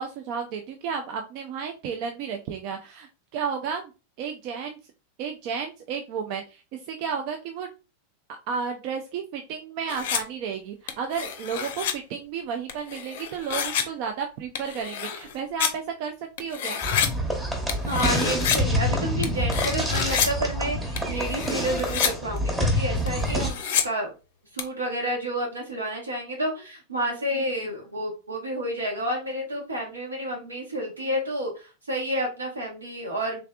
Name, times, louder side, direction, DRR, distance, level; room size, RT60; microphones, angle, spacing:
voice 1, 0.0-3.9 4.2-4.8 5.2-7.7 8.5-16.8, right 6 dB, 45° right, 4 dB, 0.4 m, -32 dB
sound 1, 9.9-10.2 10.9-11.9 12.7-13.8 14.6-15.7 16.4-17.1 17.7-18.6 19.2-20.3 21.0-22.1 22.4-22.5 23.1-23.8 24.6-24.7, left 8 dB, 55° left, 0.5 m, -28 dB
sound 2, 16.8-23.5, equal, 10° right, 1.1 m, -27 dB
voice 2, 17.9-24.1 24.5-33.4, equal, 75° right, 0 dB, 1.3 m, -30 dB
3.5 x 3.3 x 2.3 m, 0.31 s
figure-of-eight pair, 90°, 0 cm